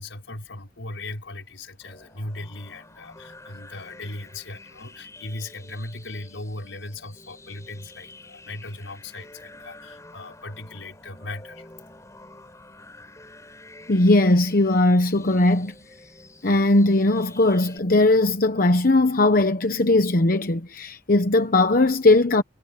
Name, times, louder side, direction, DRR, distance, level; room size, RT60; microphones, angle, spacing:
voice 1, 0.0-11.7, left 2 dB, 85° left, 5.1 m, -38 dB
sound 1, 1.8-17.8, left 2 dB, 15° left, 7.5 m, -48 dB
voice 2, 13.9-15.7 16.4-22.4, left 2 dB, 50° left, 1.0 m, -19 dB
head